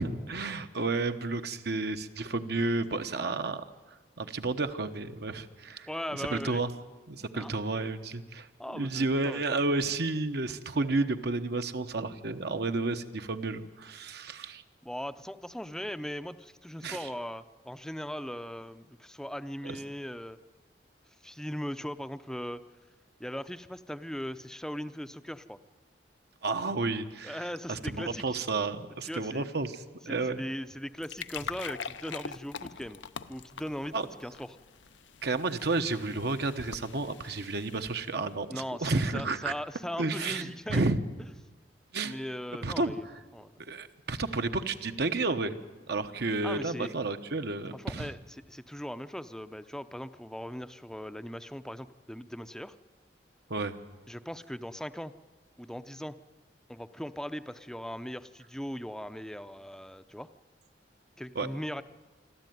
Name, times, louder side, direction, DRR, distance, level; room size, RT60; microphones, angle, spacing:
voice 1, 0.0-3.6 4.2-6.7 7.1-14.6 16.8-17.0 19.6-19.8 26.4-27.4 27.7-30.4 33.9-34.1 35.2-39.5 40.0-41.0 41.9-42.2 42.6-43.0 43.6-45.6 45.9-48.1 53.5-53.7 61.3-61.5, right 3 dB, 60° right, 8 dB, 1.1 m, -31 dB
voice 2, 5.9-6.6 7.3-7.5 8.6-9.4 14.8-20.4 21.2-22.6 23.2-25.6 27.2-28.4 29.0-29.5 30.1-33.0 33.3-34.6 38.5-41.0 42.0-43.1 43.3-43.5 46.4-46.9 47.7-48.2 48.5-52.8 54.1-55.1 55.6-56.2 56.7-60.3 61.2-61.8, equal, 5° left, 12 dB, 0.6 m, -39 dB
sound 1, 30.8-38.3, left 6 dB, 90° left, 0.7 m, -44 dB
25.5 x 13.0 x 9.3 m, 1.3 s
head